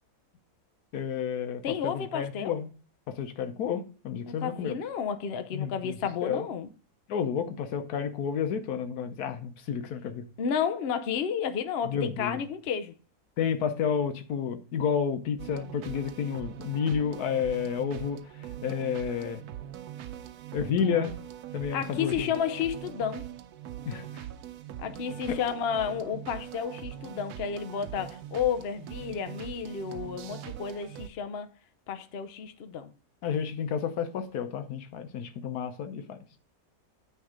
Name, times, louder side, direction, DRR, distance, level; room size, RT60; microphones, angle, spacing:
voice 1, 0.9-2.7 3.1-4.8 5.5-6.0 6.2-6.5 7.1-10.2 11.9-12.4 13.4-18.2 18.6-19.4 20.5-21.1 21.5-22.3 23.9-24.2 25.3-25.4 33.2-36.4, left 7 dB, 80° left, 1.2 m, -31 dB
voice 2, 1.6-2.6 4.3-6.7 10.4-12.9 20.8-21.1 21.7-23.3 24.8-31.5 31.9-32.9, left 7 dB, 55° left, 0.7 m, -32 dB
sound 1, 15.4-31.1, right 11 dB, 85° right, 1.1 m, -42 dB
9.0 x 3.5 x 4.9 m
omnidirectional pair, 1.6 m